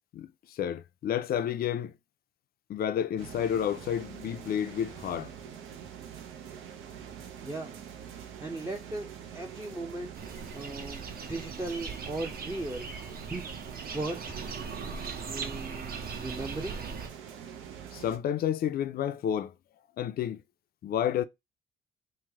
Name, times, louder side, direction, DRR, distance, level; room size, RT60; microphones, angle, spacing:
voice 1, 0.1-1.9 2.7-5.3 17.9-19.5 20.0-20.4 20.8-21.2, left 9 dB, 50° left, 0.4 m, -30 dB
sound 1, 3.2-18.2, right 8 dB, 90° right, 0.6 m, -45 dB
voice 2, 7.4-7.7 8.4-9.1 9.3-12.9 13.3-13.5 13.9-14.4 15.3-15.9 16.2-16.8, right 2 dB, 15° right, 0.5 m, -37 dB
sound 2, 10.2-17.1, right 5 dB, 50° right, 0.7 m, -40 dB
3.2 x 2.1 x 3.4 m
cardioid pair, 90°, 20 cm